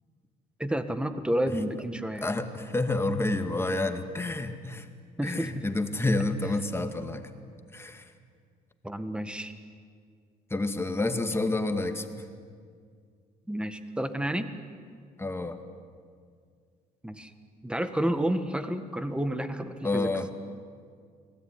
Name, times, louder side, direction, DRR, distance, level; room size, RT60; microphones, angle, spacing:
voice 1, 0.6-2.3 5.2-5.7 8.8-9.5 13.5-14.5 17.0-17.3 17.6-20.1, right 1 dB, 5° right, 9 dB, 1.8 m, -30 dB
voice 2, 2.2-4.9 5.2-7.3 7.7-8.1 10.5-12.1 15.2-15.6 19.8-20.3, left 2 dB, 15° left, 7 dB, 2.2 m, -29 dB
30.0 x 20.0 x 9.9 m, 2.1 s
cardioid pair, 110°, 17 cm